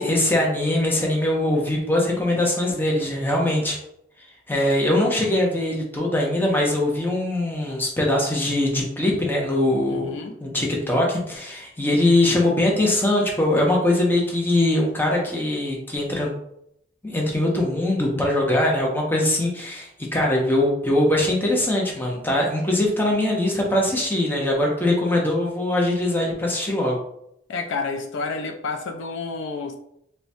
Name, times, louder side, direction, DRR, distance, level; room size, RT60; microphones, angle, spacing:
voice 1, 0.0-3.8 4.5-10.1 10.4-16.3 17.0-27.0, left 1 dB, 10° left, 0.6 m, -22 dB
voice 2, 2.1-2.4 9.9-10.4 27.5-29.8, left 4 dB, 70° left, 0.4 m, -30 dB
4.4 x 2.1 x 2.6 m
head